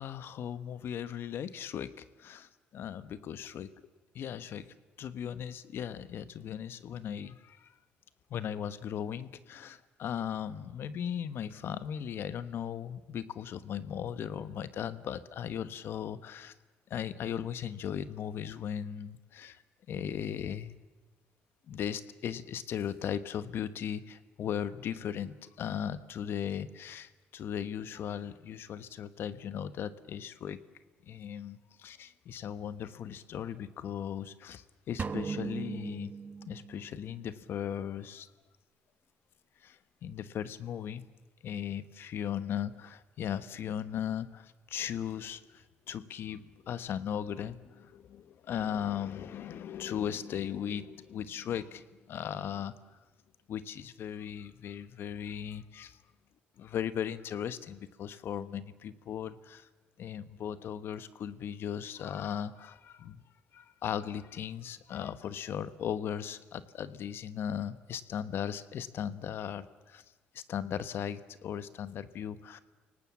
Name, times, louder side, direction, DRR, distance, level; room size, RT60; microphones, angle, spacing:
voice 1, 0.0-3.7 4.1-7.7 8.3-16.5 16.9-19.6 19.9-20.8 21.7-30.6 31.1-36.1 36.5-38.3 39.6-41.1 41.4-53.0 53.5-56.0 56.6-59.7 60.0-63.2 63.5-70.0 70.3-72.6, left 9 dB, 65° left, 14 dB, 1.1 m, -37 dB
sound 1, 35.0-37.0, right 5 dB, 40° right, 1.1 m, -38 dB
29.5 x 18.5 x 7.2 m, 1.2 s
supercardioid pair, 75°, 4 cm